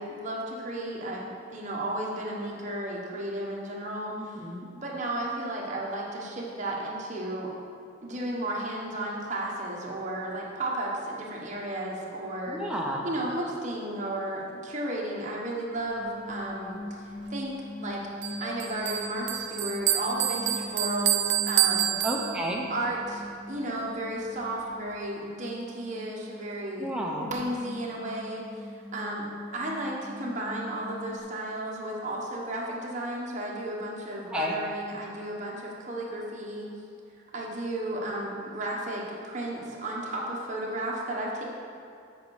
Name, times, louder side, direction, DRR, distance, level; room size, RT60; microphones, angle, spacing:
voice 1, 0.0-4.1 4.7-7.5 8.0-12.6 13.0-18.1 18.4-21.9 22.7-26.9 27.2-28.6 28.9-29.3 29.5-36.7 37.3-41.4, right 1 dB, 40° right, -3 dB, 1.2 m, -33 dB
voice 2, 4.2-4.7 12.5-13.1 22.0-22.7 26.8-27.3 34.3-34.5, equal, 5° right, -2 dB, 0.7 m, -31 dB
sound 1, 16.0-31.2, left 1 dB, 30° left, 0.4 m, -42 dB
Bell, 18.2-22.7, right 13 dB, 55° right, 0.3 m, -28 dB
8.1 x 5.3 x 4.9 m, 2.5 s
head